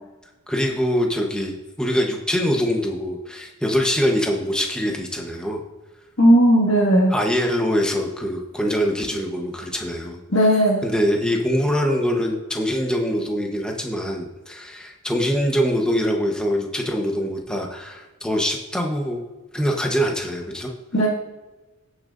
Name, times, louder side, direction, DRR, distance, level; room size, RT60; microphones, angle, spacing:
voice 1, 0.5-5.6 7.1-10.2 10.8-19.2 19.5-20.7, equal, 5° left, 1 dB, 1.1 m, -23 dB
voice 2, 6.2-7.1 10.3-10.8 20.9-21.1, equal, 60° left, -7 dB, 2.0 m, -16 dB
18.0 x 6.4 x 2.6 m, 1.1 s
head